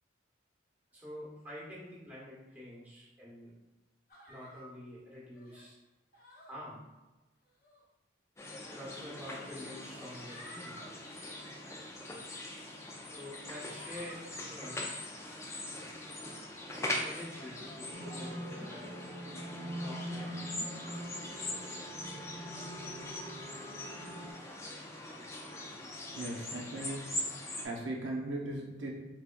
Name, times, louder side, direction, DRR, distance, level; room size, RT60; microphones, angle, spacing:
voice 1, 0.9-3.5 4.3-5.8 6.4-6.8 8.7-11.2 13.1-14.8 16.7-19.0 19.8-20.4, left 1 dB, 10° right, -6 dB, 0.9 m, -47 dB
sound 1, 4.1-4.7 5.3-5.7 6.1-6.5 7.4-7.8 8.8-8.9 9.9-10.9 11.3-11.6 12.3-12.4 13.0-13.3 13.7-14.8, equal, 45° left, 0.7 m, -54 dB
sound 2, 8.4-27.6, left 1 dB, 15° left, 0.3 m, -42 dB
sound 3, 17.9-24.3, equal, 40° right, 0.5 m, -43 dB
voice 2, 26.1-27.1 27.6-28.9, right 1 dB, 80° right, -2 dB, 0.6 m, -38 dB
3.5 x 3.4 x 2.2 m, 1.1 s
head